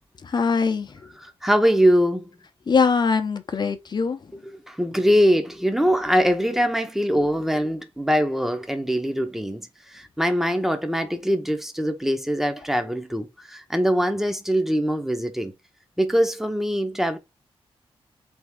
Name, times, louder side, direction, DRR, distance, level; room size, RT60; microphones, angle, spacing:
voice 1, 0.2-1.0 2.7-4.2, left 5 dB, 45° left, 0.8 m, -22 dB
voice 2, 1.2-2.3 4.7-15.5 16.0-17.2, equal, 5° right, 0.9 m, -22 dB
3.8 x 3.6 x 3.6 m
wide cardioid pair, 115°, 10 cm